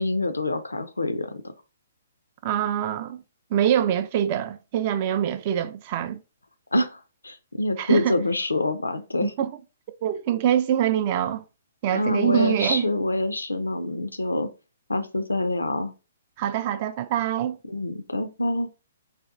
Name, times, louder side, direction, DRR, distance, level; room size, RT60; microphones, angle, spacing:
voice 1, 0.0-1.4 6.7-9.3 11.9-14.5 14.9-15.9 17.7-18.7, left 2 dB, 85° left, 0.4 m, -26 dB
voice 2, 2.4-3.2 3.5-6.2 7.8-8.1 9.2-9.5 10.0-11.4 11.8-12.9 16.4-17.6, right 10 dB, 40° right, 0.3 m, -24 dB
4.0 x 2.2 x 2.5 m
figure-of-eight pair, 125°, 0 cm